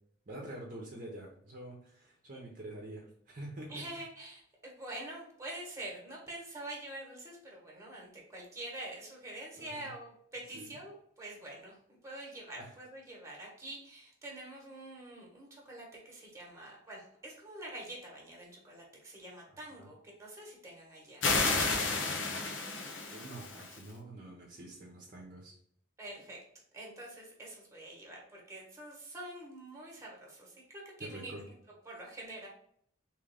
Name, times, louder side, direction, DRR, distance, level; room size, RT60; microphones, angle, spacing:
voice 1, 0.3-3.9 9.6-9.9 10.5-10.7 12.6-12.7 19.8-19.9 23.1-25.5 31.0-31.4, right 1 dB, 45° right, -2 dB, 0.8 m, -46 dB
voice 2, 3.7-21.3 21.7-22.3 26.0-26.4 26.7-31.3 31.8-32.5, right 1 dB, 15° right, -2 dB, 1.3 m, -46 dB
sound 1, 21.2-23.8, left 3 dB, 80° left, 0.8 m, -31 dB
3.7 x 3.1 x 3.4 m, 0.66 s
head